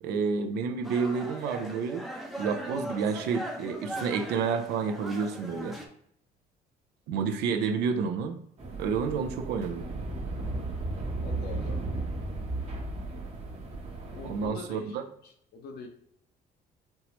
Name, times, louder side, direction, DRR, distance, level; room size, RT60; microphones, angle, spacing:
voice 1, 0.0-2.0 2.4-5.8 7.1-8.4 8.8-10.0 14.2-15.0, right 5 dB, 80° right, 8 dB, 0.5 m, -30 dB
sound 1, 0.8-5.9, right 1 dB, ahead, 0.5 m, -39 dB
sound 2, 8.6-14.5, right 2 dB, 40° right, 1.0 m, -35 dB
voice 2, 11.2-11.8 14.1-15.0 15.2-15.9, left 4 dB, 75° left, 4 dB, 0.7 m, -43 dB
4.4 x 2.0 x 2.9 m, 0.68 s
cardioid pair, 110°, 17 cm